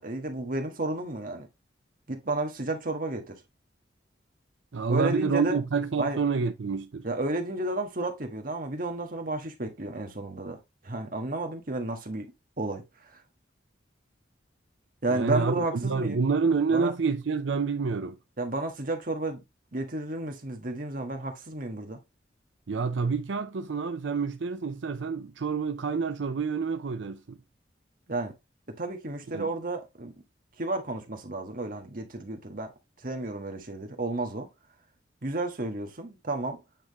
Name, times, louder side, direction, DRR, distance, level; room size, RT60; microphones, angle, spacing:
voice 1, 0.0-1.5 2.1-3.4 4.9-5.6 6.0-6.2 7.0-10.6 10.8-13.2 15.0-16.2 16.7-16.9 18.4-19.4 19.7-22.0 28.1-28.3 28.7-30.1 30.6-32.7 33.0-34.5 35.2-36.6, right 2 dB, 50° right, 1.4 m, -32 dB
voice 2, 4.7-7.1 15.1-18.2 22.7-27.4 29.3-29.4, right 5 dB, 90° right, 0.6 m, -28 dB
8.9 x 3.7 x 3.0 m
head